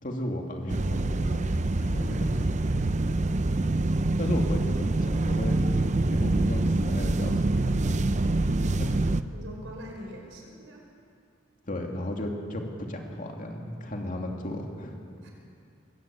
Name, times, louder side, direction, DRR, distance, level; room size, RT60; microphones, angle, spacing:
voice 1, 0.0-1.5 1.8-2.1 4.2-5.6 6.1-8.1 8.8-9.0 11.7-15.0, left 1 dB, 45° left, 1 dB, 2.6 m, -34 dB
sound 1, 0.7-9.2, right 2 dB, 40° right, 0.6 m, -26 dB
voice 2, 9.3-10.8 15.2-15.3, equal, 80° right, 1 dB, 5.0 m, -43 dB
23.0 x 15.5 x 8.9 m, 2.4 s
head